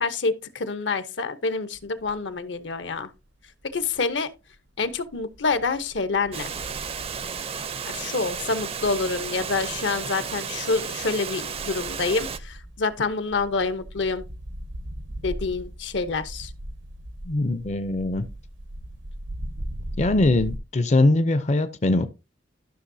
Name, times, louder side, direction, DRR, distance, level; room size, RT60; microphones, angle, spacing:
voice 1, 0.0-3.1 3.7-4.3 4.8-6.5 7.9-14.2 15.2-16.5, left 4 dB, 70° left, 0.8 m, -27 dB
sound 1, 1.7-2.4 2.8-4.1 4.5-20.6, right 1 dB, 80° right, 1.0 m, -40 dB
Water, 6.3-12.4, right 6 dB, 30° right, 0.5 m, -33 dB
voice 2, 17.3-18.2 20.0-22.1, left 2 dB, 40° left, 0.5 m, -21 dB
13.0 x 6.1 x 2.7 m
head